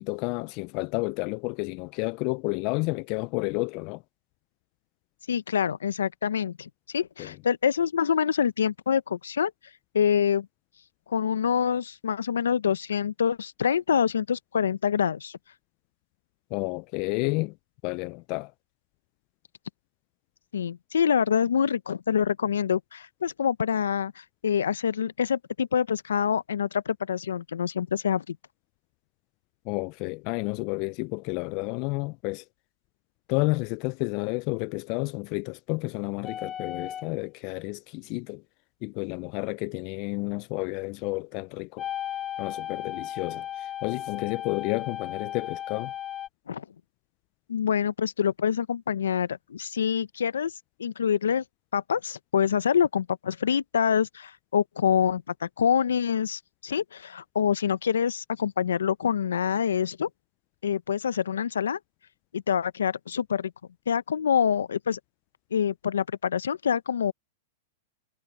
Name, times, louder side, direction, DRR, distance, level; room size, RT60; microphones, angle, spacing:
voice 1, 0.0-4.0 7.2-7.4 16.5-17.6 17.8-18.5 29.7-32.4 33.3-38.4 38.8-41.9 42.4-45.9, left 28 dB, 45° left, 0.4 m, -31 dB
voice 2, 5.3-9.5 9.9-10.5 11.1-15.4 20.5-28.4 46.5-46.6 47.5-50.5 50.8-51.4 51.7-60.1 60.6-61.8 62.3-63.5 63.9-65.0 65.5-67.1, left 7 dB, 85° left, 0.9 m, -26 dB
sound 1, 36.2-37.1 41.8-46.3, left 10 dB, 25° left, 1.2 m, -35 dB
hypercardioid pair, 115°, 0 cm